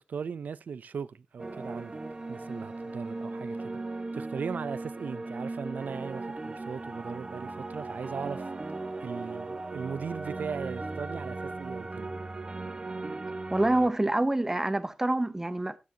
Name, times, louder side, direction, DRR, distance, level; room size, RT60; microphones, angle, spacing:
voice 1, 0.0-2.0 2.3-3.8 4.1-8.5 9.0-12.1, right 6 dB, 80° right, 0.5 m, -38 dB
sound 1, 1.4-13.9, right 3 dB, 30° right, 1.2 m, -37 dB
voice 2, 13.5-15.8, right 1 dB, 15° right, 0.8 m, -26 dB
13.5 x 12.0 x 2.8 m
wide cardioid pair, 115°, 3 cm